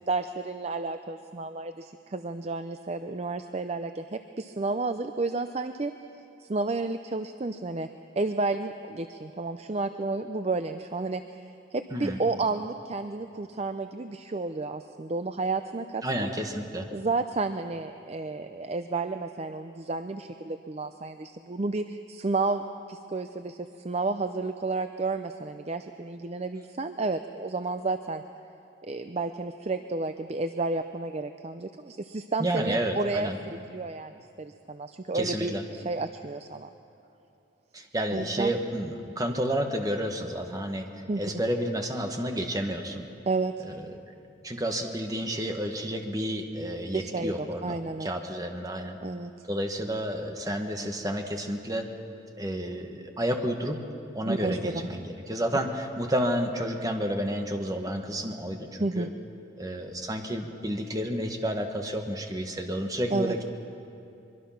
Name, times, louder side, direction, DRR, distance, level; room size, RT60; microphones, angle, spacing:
voice 1, 0.0-5.9 6.4-7.9 8.2-11.4 11.7-16.3 16.9-28.2 28.8-34.1 34.4-36.7 38.1-38.5 41.1-41.2 43.3-43.7 46.9-48.1 49.0-49.3 54.3-54.7 58.8-59.1 63.1-63.3, right 3 dB, 35° right, 9 dB, 0.5 m, -31 dB
voice 2, 16.0-16.9 32.4-33.4 35.1-35.6 37.7-40.9 41.2-43.1 43.6-43.8 44.4-49.0 49.5-51.9 52.4-53.8 54.1-59.1 59.6-63.4, equal, 20° right, 4 dB, 1.5 m, -30 dB
24.0 x 22.5 x 5.9 m, 2.6 s
head